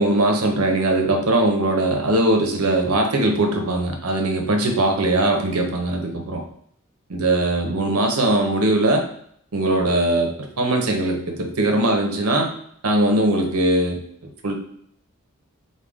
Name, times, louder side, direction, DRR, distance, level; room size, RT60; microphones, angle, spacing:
voice 1, 0.0-6.4 7.1-9.0 9.5-12.5 12.8-14.0 14.4-14.6, right 1 dB, 90° right, 3 dB, 0.7 m, -20 dB
3.5 x 2.3 x 3.5 m, 0.66 s
head